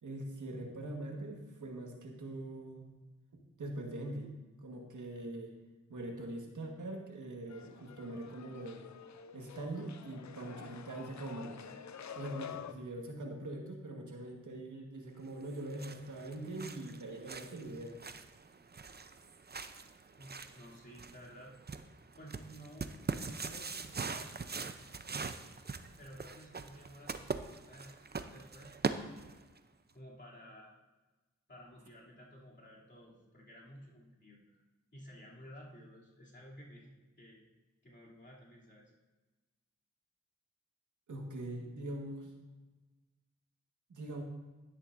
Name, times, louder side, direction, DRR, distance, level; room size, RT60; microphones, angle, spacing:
voice 1, 0.0-2.8 3.3-5.5 5.9-8.8 9.3-11.6 12.1-18.0 41.1-42.3 43.9-44.2, right 1 dB, 90° right, 1 dB, 1.5 m, -43 dB
sound 1, 7.5-12.7, left 8 dB, 70° left, 0.5 m, -49 dB
sound 2, 15.4-29.6, right 4 dB, 35° right, 0.6 m, -42 dB
voice 2, 20.2-21.6 22.2-25.0 26.0-28.7 29.9-30.7 31.5-34.6 34.9-37.4 37.8-38.9, equal, 35° left, -5 dB, 2.9 m, -54 dB
11.0 x 10.0 x 2.6 m, 1.2 s
cardioid pair, 50°, 29 cm